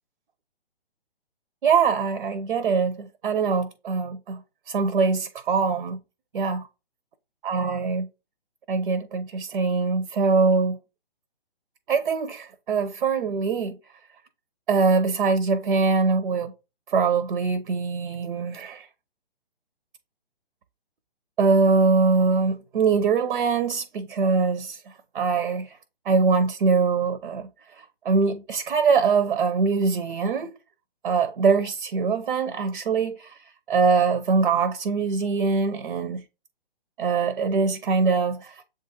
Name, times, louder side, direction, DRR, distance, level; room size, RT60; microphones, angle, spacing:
voice 1, 1.6-4.4 4.7-6.0 6.3-6.7 7.4-8.1 8.7-10.8 11.9-13.8 14.7-16.5 16.9-18.9 21.4-24.8 25.1-25.8 26.1-27.5 27.8-30.5 31.0-36.2 37.0-38.6, right 4 dB, 65° right, 0.6 m, -23 dB
7.4 x 2.5 x 2.7 m
figure-of-eight pair, 135°, 30 cm